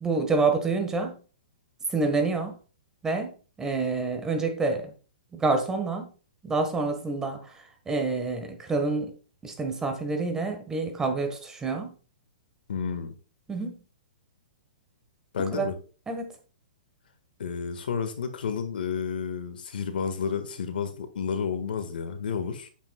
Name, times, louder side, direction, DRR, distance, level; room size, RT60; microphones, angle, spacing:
voice 1, 0.0-1.2 1.9-2.6 3.0-4.9 5.3-6.1 6.4-9.2 9.4-11.9 13.5-13.8 15.4-15.7 16.1-16.3, right 3 dB, 10° right, 5 dB, 1.5 m, -28 dB
voice 2, 12.7-13.1 15.3-15.8 17.4-22.7, left 6 dB, 80° left, 8 dB, 1.8 m, -31 dB
9.1 x 8.5 x 2.4 m, 0.37 s
hypercardioid pair, 145°, 5 cm